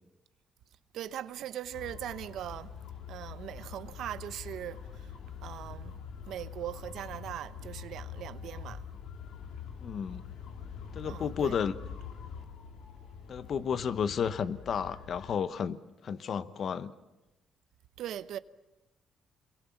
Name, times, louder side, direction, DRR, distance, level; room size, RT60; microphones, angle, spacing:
voice 1, 0.9-2.7 3.1-5.1 5.4-6.0 6.3-8.8 11.0-11.6 18.0-18.4, right 11 dB, 80° right, 0.8 m, -40 dB
sound 1, 1.7-15.3, left 7 dB, 80° left, 2.8 m, -45 dB
voice 2, 9.8-10.2 10.9-11.7 13.3-15.8 16.0-16.9, left 7 dB, 55° left, 1.1 m, -32 dB
27.0 x 22.5 x 7.2 m
cardioid pair, 90°, 0 cm